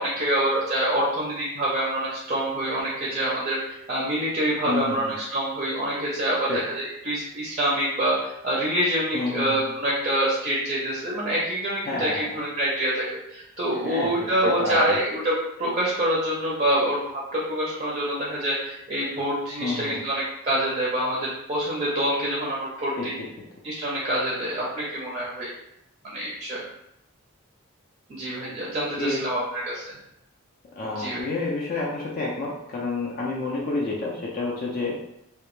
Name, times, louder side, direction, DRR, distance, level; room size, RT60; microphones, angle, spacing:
voice 1, 0.0-3.6 3.9-15.3 15.6-23.1 23.6-25.5 26.0-26.6 28.1-29.8 31.0-31.3, right 1 dB, 30° right, -6 dB, 0.5 m, -26 dB
voice 2, 4.7-5.2 6.5-6.6 9.1-9.6 11.9-12.3 13.8-14.1 14.4-15.0 19.6-20.0 23.0-23.1 29.0-29.2 30.7-35.0, left 3 dB, 40° left, -4 dB, 0.4 m, -29 dB
2.1 x 2.1 x 3.0 m, 0.84 s
head